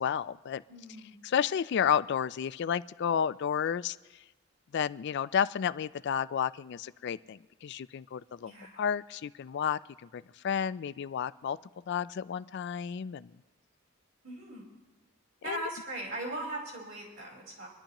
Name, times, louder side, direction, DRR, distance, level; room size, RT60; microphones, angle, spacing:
voice 1, 0.0-0.6 1.2-4.0 4.7-8.5 8.8-9.8 10.1-11.6 11.9-13.3 15.5-15.6, left 8 dB, 55° left, 16 dB, 0.3 m, -31 dB
voice 2, 0.7-1.1 8.4-8.8 14.2-14.6 15.4-17.7, right 1 dB, 70° right, -4 dB, 4.9 m, -39 dB
26.0 x 11.5 x 3.0 m, 1.2 s
head